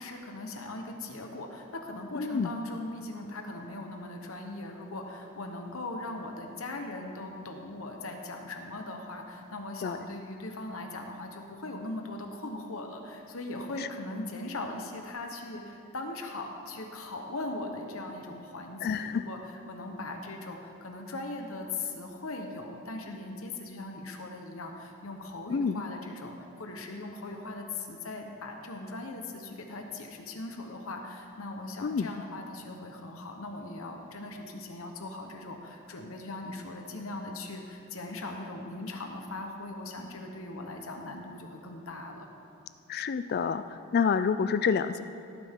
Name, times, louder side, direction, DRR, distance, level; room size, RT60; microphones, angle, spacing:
voice 1, 0.0-42.3, left 2 dB, 65° left, 3 dB, 1.1 m, -39 dB
voice 2, 2.2-2.5 9.8-10.0 18.8-19.2 25.5-25.8 31.8-32.2 42.9-45.0, left 6 dB, 45° left, 12 dB, 0.3 m, -28 dB
17.5 x 9.4 x 3.7 m, 2.5 s
head